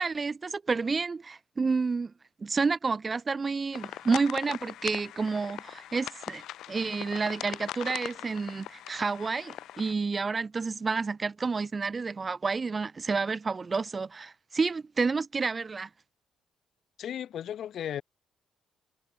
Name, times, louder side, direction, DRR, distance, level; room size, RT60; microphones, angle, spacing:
voice 1, 0.0-2.1 2.4-15.9, right 4 dB, 25° right, 1.8 m, -30 dB
sound 1, 3.7-9.9, left 13 dB, 80° left, 0.5 m, -41 dB
voice 2, 17.0-18.0, left 10 dB, 55° left, 1.9 m, -35 dB
cardioid pair, 140°, 0 cm